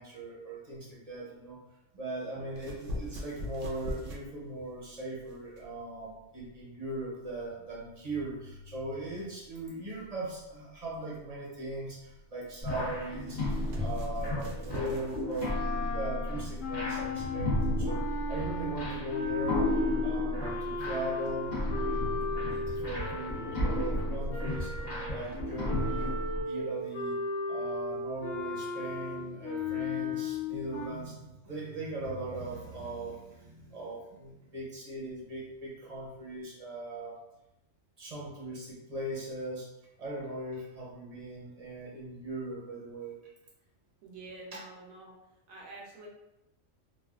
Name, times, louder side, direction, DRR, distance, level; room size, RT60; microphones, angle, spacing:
voice 1, 0.0-1.6 1.9-15.5 15.9-21.5 22.3-24.7 25.1-26.1 26.4-27.2 27.5-37.2 38.0-39.7 40.0-43.2, right 1 dB, 35° right, -5 dB, 0.7 m, -39 dB
voice 2, 2.2-2.7 44.0-45.2 45.5-46.1, right 2 dB, 85° right, -2 dB, 1.2 m, -48 dB
sound 1, 2.5-15.6, left 1 dB, 70° right, 0.9 m, -43 dB
sound 2, 12.6-26.4, left 1 dB, 35° left, 1.0 m, -33 dB
sound 3, 15.4-25.2 25.7-30.9, left 4 dB, 80° left, 1.1 m, -36 dB
3.2 x 2.4 x 2.3 m, 0.90 s
omnidirectional pair, 1.4 m